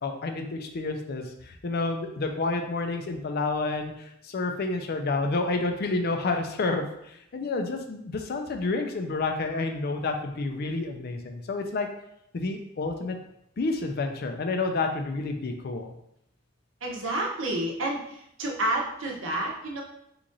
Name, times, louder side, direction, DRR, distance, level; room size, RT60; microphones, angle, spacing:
voice 1, 0.0-3.9 4.2-6.8 7.3-11.9 12.3-13.2 13.6-15.9, left 3 dB, 50° left, 5 dB, 0.4 m, -29 dB
voice 2, 16.8-19.8, right 1 dB, 70° right, -1 dB, 0.7 m, -30 dB
3.0 x 2.5 x 3.8 m, 0.77 s
head